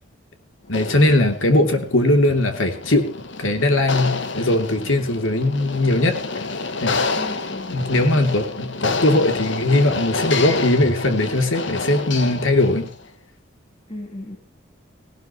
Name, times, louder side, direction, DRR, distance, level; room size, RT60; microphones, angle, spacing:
voice 1, 0.7-3.1 3.4-6.2 6.8-7.0 7.7-12.9, left 1 dB, 85° left, 6 dB, 2.9 m, -19 dB
shaking metal sheet, 0.7-13.0, left 4 dB, 65° left, 1.6 m, -29 dB
voice 2, 7.1-7.9 13.9-14.4, left 1 dB, 30° left, 1 dB, 2.9 m, -35 dB
18.5 x 17.5 x 3.1 m, 0.38 s
head